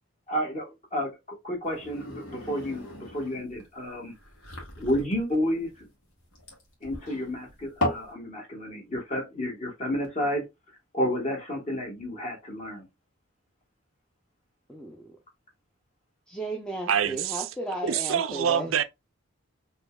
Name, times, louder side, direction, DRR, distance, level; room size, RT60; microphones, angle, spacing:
voice 1, 0.3-4.1 4.8-5.7 6.8-10.4 10.9-12.9, equal, 35° left, 1.7 m, -31 dB
sound 1, 1.6-8.1, left 1 dB, 90° left, 1.6 m, -36 dB
voice 2, 14.7-15.2 16.3-18.8, right 2 dB, 5° left, 0.5 m, -35 dB
voice 3, 16.9-17.4 17.8-18.8, right 8 dB, 75° right, 0.4 m, -25 dB
4.2 x 3.0 x 2.2 m
head